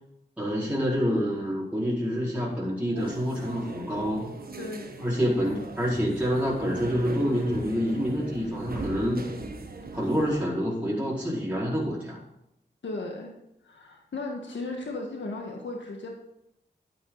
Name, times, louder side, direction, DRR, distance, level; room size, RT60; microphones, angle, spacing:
voice 1, 0.4-4.3 5.0-9.2 9.9-12.2, equal, 10° right, -8 dB, 4.9 m, -27 dB
sound 1, 2.9-10.4, right 3 dB, 55° right, 1.5 m, -39 dB
voice 2, 4.6-4.9 12.8-13.3 13.6-16.1, left 2 dB, 90° left, 1 dB, 1.7 m, -35 dB
12.5 x 8.6 x 4.0 m, 0.82 s
wide cardioid pair, 65°, 19 cm